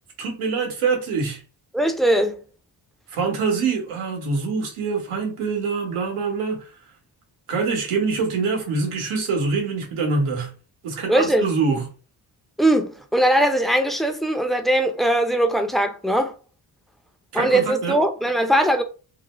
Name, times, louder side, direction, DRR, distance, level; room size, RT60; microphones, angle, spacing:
voice 1, 0.2-1.4 3.1-6.7 7.5-10.5 10.8-11.9 17.3-18.0, right 4 dB, 85° right, 1.1 m, -24 dB
voice 2, 1.7-2.4 11.1-11.5 12.6-16.3 17.3-18.8, right 1 dB, ahead, 0.5 m, -20 dB
2.7 x 2.1 x 3.0 m
supercardioid pair, 45°, 49 cm